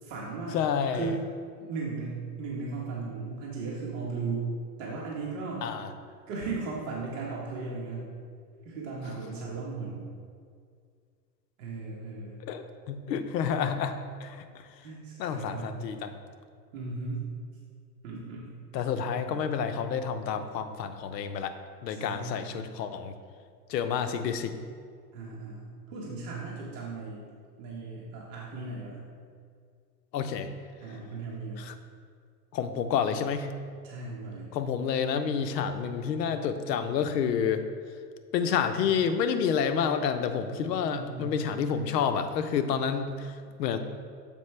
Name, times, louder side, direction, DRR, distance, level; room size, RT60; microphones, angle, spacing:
voice 1, 0.0-0.6 0.9-1.2 1.6-4.5 4.8-5.7 6.3-8.1 8.6-10.0 11.6-12.4 14.8-15.7 16.7-17.2 18.0-18.5 21.9-22.6 25.1-27.3 27.6-29.0 30.8-31.7 33.8-34.5 40.8-41.4, right 4 dB, 50° right, -4 dB, 1.2 m, -36 dB
voice 2, 0.5-1.1 5.6-5.9 12.4-14.4 15.2-16.1 18.7-21.5 21.8-23.1 23.7-24.5 30.1-30.5 31.6-31.7 32.5-33.5 34.5-37.6 38.3-43.8, left 7 dB, 80° left, 9 dB, 0.7 m, -29 dB
7.1 x 5.1 x 3.2 m, 2.1 s
supercardioid pair, 155°, 49 cm